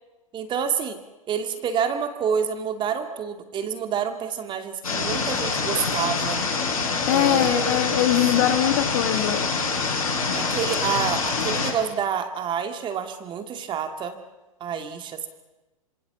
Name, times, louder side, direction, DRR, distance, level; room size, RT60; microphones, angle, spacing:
voice 1, 0.3-1.0 1.3-6.4 7.1-7.8 8.2-8.3 10.3-14.2 14.6-15.3, right 7 dB, 25° right, 7 dB, 2.5 m, -28 dB
sound 1, 4.8-11.7, left 4 dB, 80° left, 7.8 m, -25 dB
voice 2, 7.1-9.4, left 12 dB, 50° left, 8 dB, 2.5 m, -22 dB
26.5 x 26.5 x 7.2 m, 1.1 s
figure-of-eight pair, 105°, 18 cm